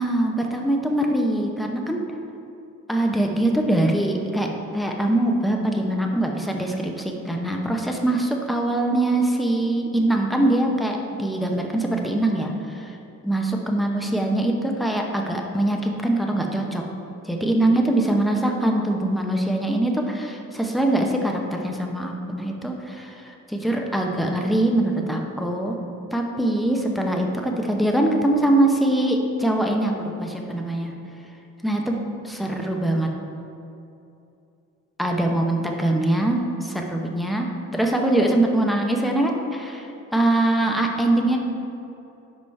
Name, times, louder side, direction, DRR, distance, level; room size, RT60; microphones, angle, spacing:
voice 1, 0.0-2.0 2.9-4.5 4.7-13.0 13.2-16.8 17.3-25.8 26.1-30.9 31.6-33.1 35.0-37.5 37.8-41.4, right 1 dB, ahead, 1 dB, 0.7 m, -23 dB
5.4 x 5.0 x 4.6 m, 2.7 s
cardioid pair, 90°, 30 cm